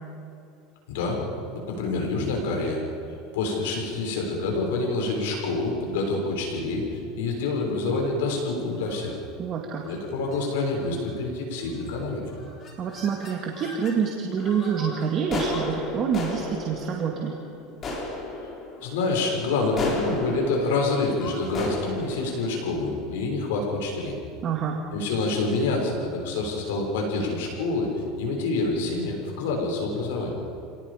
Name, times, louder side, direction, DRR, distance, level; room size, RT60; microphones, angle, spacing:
voice 1, 0.9-1.2 1.7-2.8 3.3-9.2 9.8-12.2 18.8-24.1 24.9-27.9 28.2-30.4, left 3 dB, 85° left, 0 dB, 6.5 m, -27 dB
sound 1, 7.9-8.3 8.8-9.1 9.8-10.0 10.3-10.4 10.7-11.1 11.7-12.0 12.3-14.0 14.4-23.6, left 2 dB, 35° left, 4.4 m, -35 dB
voice 2, 9.4-9.8 12.8-17.3 24.4-24.8, right 7 dB, 40° right, 0 dB, 2.2 m, -27 dB
27.5 x 18.5 x 5.2 m, 2.5 s
supercardioid pair, 130°, 0 cm